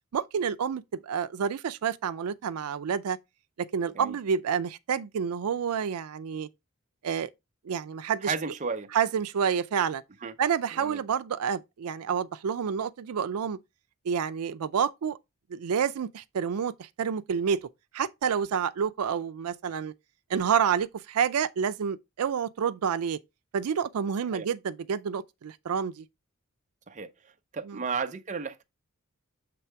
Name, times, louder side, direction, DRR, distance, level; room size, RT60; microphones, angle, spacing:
voice 1, 0.1-3.2 3.6-6.5 7.0-7.3 7.6-8.3 8.9-10.0 10.4-13.6 14.0-15.2 15.5-17.6 17.9-19.9 20.3-23.2 23.5-26.0 27.7-27.8, right 7 dB, 85° right, 0.4 m, -29 dB
voice 2, 8.2-8.9 10.2-10.3 10.8-11.0 24.3-24.5 26.9-27.1 27.5-28.6, right 5 dB, 35° right, 0.6 m, -33 dB
6.9 x 3.4 x 4.5 m
head